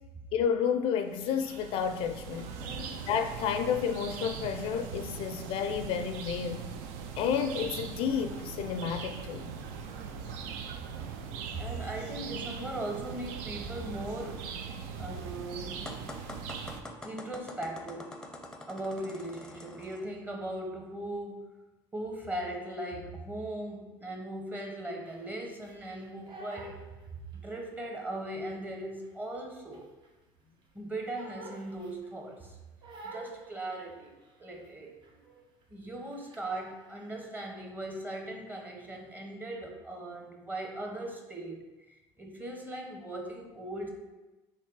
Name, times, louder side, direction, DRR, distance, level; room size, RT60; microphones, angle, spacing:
voice 1, 0.3-2.5 3.1-6.7 7.2-9.5, left 7 dB, 60° left, 7 dB, 0.4 m, -31 dB
sound 1, 1.1-16.8, right 6 dB, 80° right, 0.4 m, -41 dB
voice 2, 2.6-3.1 11.5-14.4 15.0-15.8 17.0-18.2 18.7-21.5 21.9-26.8 27.3-29.8 30.7-32.6 33.0-34.1 34.4-35.4 35.7-41.6 41.9-43.9, right 1 dB, 15° right, 1 dB, 0.9 m, -39 dB
sound 2, 15.9-20.1, left 1 dB, 5° left, 0.5 m, -45 dB
Crying sobbing, 25.0-27.7 28.0-30.3 30.6-32.3 32.8-34.7 35.0-35.3 35.6-37.2, right 2 dB, 50° right, 0.7 m, -50 dB
3.3 x 3.0 x 4.6 m, 1.1 s
supercardioid pair, 95°, 10 cm